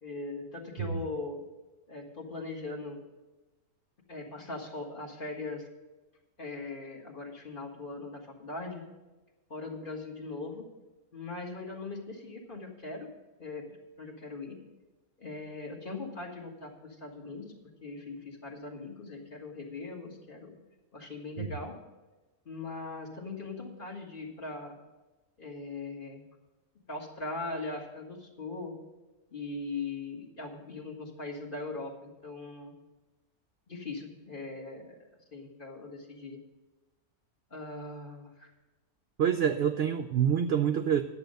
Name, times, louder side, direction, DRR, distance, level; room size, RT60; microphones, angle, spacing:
voice 1, 0.0-1.4 1.9-3.0 4.1-5.7 6.4-8.8 9.5-10.7 11.1-13.1 13.4-14.6 15.2-17.5 17.8-20.5 20.9-21.7 22.5-24.8 25.4-26.2 26.9-28.8 29.3-32.7 33.7-34.9 35.3-36.4 37.5-38.5, left 3 dB, 35° left, 0 dB, 1.8 m, -40 dB
voice 2, 39.2-41.0, right 8 dB, 65° right, 8 dB, 0.6 m, -27 dB
10.5 x 7.4 x 6.5 m, 1.1 s
omnidirectional pair, 1.5 m